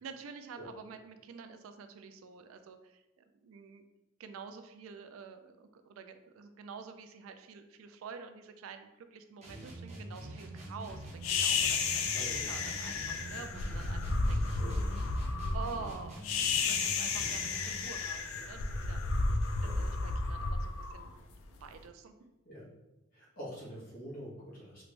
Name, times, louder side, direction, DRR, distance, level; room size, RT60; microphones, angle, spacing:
voice 1, 0.0-3.8 4.2-14.8 15.5-19.0 19.6-21.1 21.6-22.3, right 5 dB, 85° right, 8 dB, 0.3 m, -48 dB
sound 1, 9.4-17.9, right 1 dB, 35° right, 0.8 m, -45 dB
sound 2, 11.2-21.6, left 4 dB, 85° left, 0.4 m, -32 dB
voice 2, 12.1-12.7 14.5-15.0 15.7-15.9 17.2-17.4 19.6-19.9 22.4-22.7 23.1-24.8, equal, 45° left, -7 dB, 1.3 m, -46 dB
3.1 x 2.5 x 3.2 m, 0.97 s
head